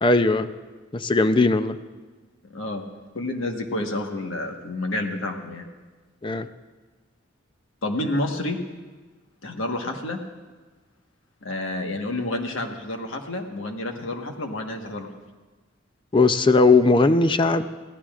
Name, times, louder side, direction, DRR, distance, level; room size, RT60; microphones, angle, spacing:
voice 1, 0.0-0.5 0.9-1.8 6.2-6.5 16.1-17.7, left 3 dB, 25° left, 11 dB, 0.5 m, -18 dB
voice 2, 2.5-2.9 3.1-5.6 7.8-8.6 9.4-10.2 11.4-15.1, left 1 dB, 85° left, 3 dB, 1.4 m, -29 dB
22.5 x 15.5 x 2.5 m, 1.3 s
head